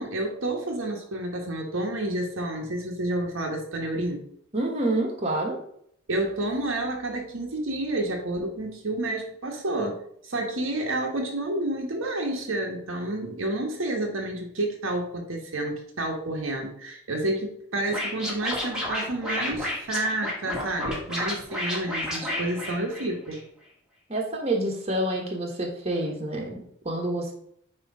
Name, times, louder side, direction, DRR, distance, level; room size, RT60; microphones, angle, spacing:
voice 1, 0.0-4.2 6.1-23.4, right 1 dB, 65° right, 1 dB, 1.2 m, -30 dB
voice 2, 4.5-5.6 24.1-27.3, right 1 dB, 30° right, 0 dB, 1.3 m, -28 dB
Scratching (performance technique), 17.9-23.4, left 1 dB, 5° right, 1.7 m, -31 dB
9.3 x 3.1 x 4.8 m, 0.68 s
head